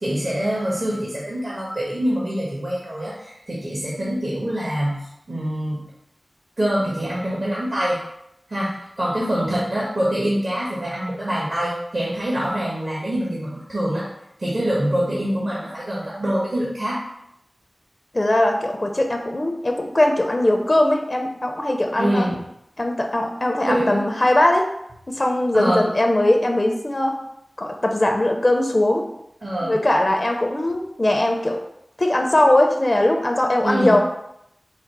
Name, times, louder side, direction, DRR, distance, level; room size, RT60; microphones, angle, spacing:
voice 1, 0.0-5.8 6.6-8.0 8.5-14.1 14.4-17.0 22.0-22.4 23.7-24.0 25.5-25.8 29.4-29.8 33.6-34.0, equal, 55° right, -5 dB, 1.2 m, -25 dB
voice 2, 18.1-22.3 22.8-24.7 25.1-27.2 27.6-29.0 29.6-31.6 32.0-34.0, left 1 dB, 45° left, 3 dB, 0.5 m, -20 dB
4.8 x 2.0 x 4.6 m, 0.77 s
wide cardioid pair, 45°, 0 cm